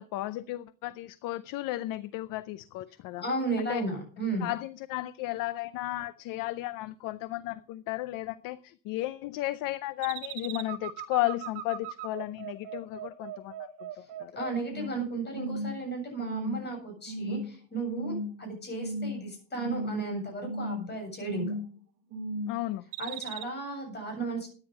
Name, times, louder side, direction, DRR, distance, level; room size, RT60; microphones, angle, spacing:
voice 1, 0.0-3.2 3.6-3.8 4.4-13.9 14.2-14.3 22.5-22.8, left 17 dB, 45° left, 16 dB, 0.6 m, -34 dB
voice 2, 3.2-4.5 14.4-21.5 23.0-24.5, right 3 dB, 20° left, 2 dB, 7.7 m, -34 dB
sound 1, 10.0-15.0 15.3-15.8 16.2-16.7 17.1-17.5 17.9-18.4 18.7-19.3 19.6-20.1 20.4-20.9 21.2-21.7 22.1-22.6 22.9-23.4, right 2 dB, 65° right, 2.6 m, -36 dB
14.0 x 9.9 x 5.4 m, 0.41 s
cardioid pair, 160°, 45 cm